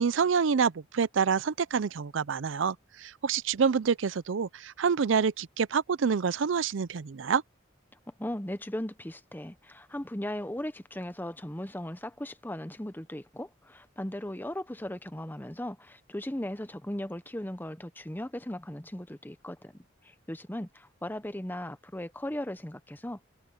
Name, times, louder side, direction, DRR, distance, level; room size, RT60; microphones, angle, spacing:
voice 1, 0.0-7.4, right 6 dB, 75° right, 0.5 m, -27 dB
voice 2, 8.1-19.7 20.0-23.2, left 1 dB, 10° left, 0.9 m, -37 dB
head